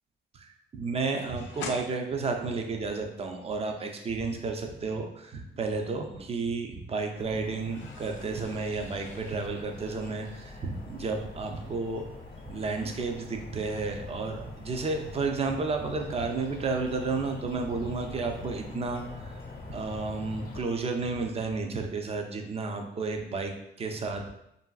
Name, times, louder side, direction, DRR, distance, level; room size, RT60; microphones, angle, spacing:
voice 1, 0.8-12.1 12.5-24.3, right 4 dB, 30° right, 4 dB, 0.4 m, -32 dB
sound 1, 1.3-3.4 5.7-6.5 6.9-12.9 13.2-13.5, left 4 dB, 70° left, 0.5 m, -47 dB
sound 2, 7.2-20.6, left 3 dB, 50° left, 0.8 m, -44 dB
2.9 x 2.6 x 2.3 m, 0.80 s
cardioid pair, 90°, 20 cm